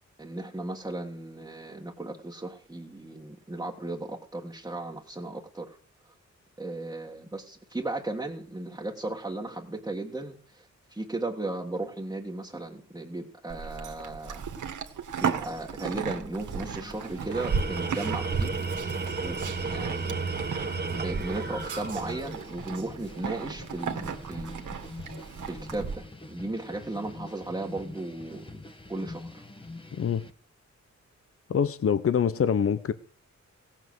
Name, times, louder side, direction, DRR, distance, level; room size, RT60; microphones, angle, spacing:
voice 1, 0.2-5.8 6.6-14.4 15.2-18.6 19.2-20.1 20.9-24.5 25.5-28.4 28.9-29.4, right 2 dB, 10° right, 1.6 m, -36 dB
Livestock farm animals working animals, 13.5-26.0, right 6 dB, 85° right, 1.8 m, -35 dB
sound 1, 16.6-30.3, left 2 dB, 15° left, 1.5 m, -45 dB
Tools, 17.2-22.6, right 4 dB, 35° right, 1.3 m, -33 dB
voice 2, 31.5-32.9, left 7 dB, 50° left, 0.8 m, -25 dB
17.0 x 7.5 x 7.8 m
wide cardioid pair, 130°, 30 cm